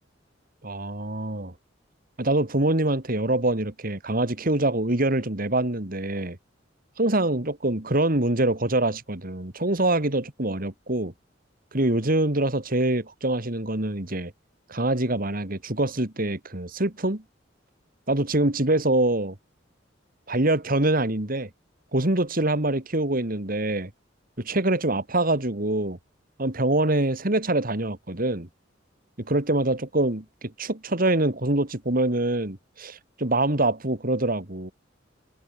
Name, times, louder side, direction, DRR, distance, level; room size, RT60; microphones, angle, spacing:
voice 1, 0.6-1.5 2.2-6.4 7.0-11.1 11.7-14.3 14.7-17.2 18.1-19.4 20.3-21.5 21.9-23.9 24.4-26.0 26.4-28.5 29.2-34.7, right 2 dB, 50° right, 2.6 m, -25 dB
head